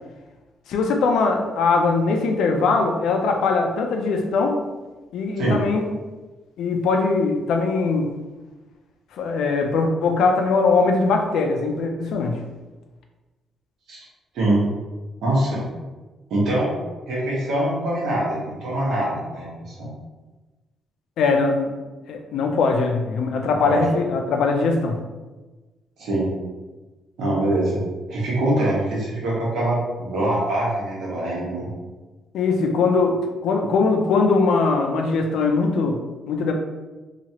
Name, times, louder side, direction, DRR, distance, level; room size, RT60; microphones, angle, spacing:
voice 1, 0.7-4.6 5.1-5.9 6.6-8.1 9.2-12.4 21.2-21.7 22.1-25.0 32.3-36.0 36.3-36.5, left 4 dB, 85° left, 3 dB, 0.4 m, -21 dB
voice 2, 14.3-14.7 15.2-15.6 16.3-16.8 17.1-19.9 23.6-23.8 26.0-26.3 27.2-27.8 28.1-31.7, right 1 dB, 70° right, -6 dB, 1.2 m, -23 dB
2.9 x 2.4 x 2.8 m, 1.2 s
cardioid pair, 130°, 0 cm